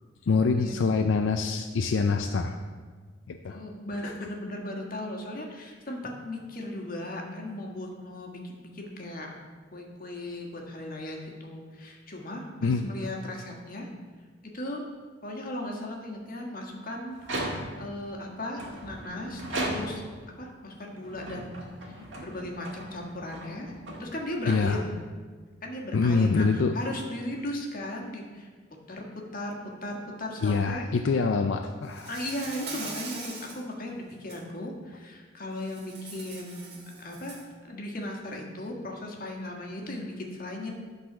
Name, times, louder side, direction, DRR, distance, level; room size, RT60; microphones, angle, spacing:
voice 1, 0.3-2.6 3.3-3.6 4.0-4.1 12.6-12.9 24.5-24.8 25.9-26.7 30.4-32.1, left 4 dB, 80° left, 5 dB, 0.4 m, -25 dB
voice 2, 3.4-9.3 9.7-13.9 14.4-14.8 15.2-17.2 17.8-20.0 20.4-23.7 24.0-24.9 25.6-28.5 28.9-29.0 29.3-29.5 29.8-30.8 32.1-37.4 37.6-40.7, left 1 dB, 50° left, 0 dB, 1.4 m, -37 dB
sound 1, 17.1-18.0 18.6-20.2 20.9-24.5, right 1 dB, 75° right, 1.6 m, -37 dB
Insect, 31.9-33.6 34.1-34.4 35.6-37.5, right 3 dB, 60° right, 1.5 m, -41 dB
10.0 x 4.0 x 6.0 m, 1.5 s
head